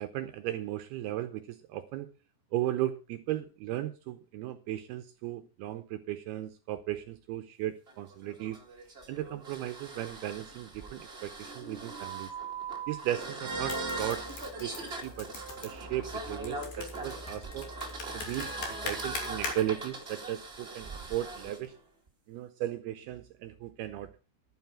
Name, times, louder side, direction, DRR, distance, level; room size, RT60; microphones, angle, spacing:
voice 1, 0.0-2.1 2.5-8.6 9.1-12.3 12.9-14.2 14.6-14.7 15.0-15.3 15.6-17.7 18.1-21.8 22.3-24.1, right 13 dB, 80° right, 9 dB, 2.3 m, -36 dB
sound 1, 7.9-21.6, right 3 dB, 45° right, 0.7 m, -40 dB
sound 2, 13.5-19.6, left 3 dB, 55° left, 4.2 m, -42 dB
11.5 x 9.3 x 5.8 m, 0.33 s
omnidirectional pair, 5.3 m